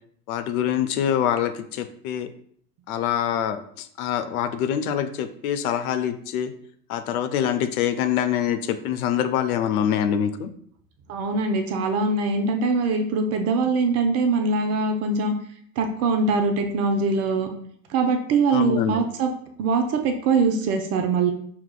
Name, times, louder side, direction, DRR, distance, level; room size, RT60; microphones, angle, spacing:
voice 1, 0.3-2.3 2.9-6.5 6.9-10.5 18.5-19.0, left 9 dB, 60° left, 9 dB, 0.6 m, -25 dB
voice 2, 11.1-15.3 15.8-17.5 17.9-19.3 19.6-21.3, right 4 dB, 30° right, 5 dB, 0.5 m, -22 dB
5.9 x 2.8 x 2.2 m, 0.62 s
hypercardioid pair, 95°, 50 cm